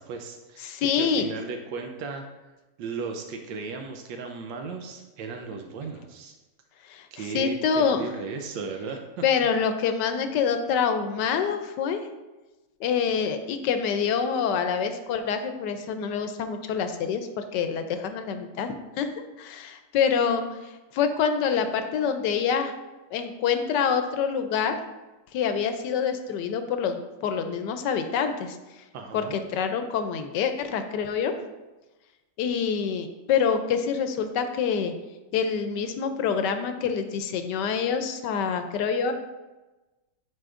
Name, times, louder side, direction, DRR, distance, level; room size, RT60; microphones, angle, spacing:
voice 1, 0.0-2.2 2.8-6.3 7.1-9.2 28.9-29.4, right 4 dB, 90° right, 4 dB, 1.3 m, -36 dB
voice 2, 0.6-1.3 6.9-8.0 9.2-12.0 12.8-19.1 19.4-22.7 23.1-24.7 25.3-28.6 29.1-31.3 32.4-34.9 35.3-39.1, left 6 dB, 75° left, 8 dB, 1.1 m, -26 dB
10.5 x 4.5 x 2.5 m, 1.1 s
omnidirectional pair, 2.0 m